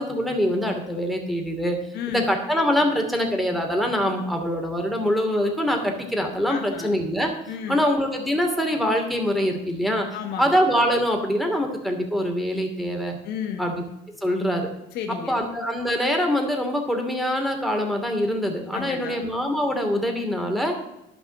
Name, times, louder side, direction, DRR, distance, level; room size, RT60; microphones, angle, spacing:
voice 1, 0.0-1.8 2.1-7.3 7.7-10.1 10.4-13.2 13.6-13.8 14.2-14.7 15.3-20.8, equal, ahead, 3 dB, 2.5 m, -24 dB
voice 2, 1.9-2.3 6.5-7.0 7.5-7.8 10.1-10.6 13.2-13.7 14.9-15.4 18.7-19.2, left 7 dB, 80° left, 4 dB, 1.2 m, -32 dB
12.0 x 5.6 x 7.0 m, 0.88 s
cardioid pair, 110°, 17 cm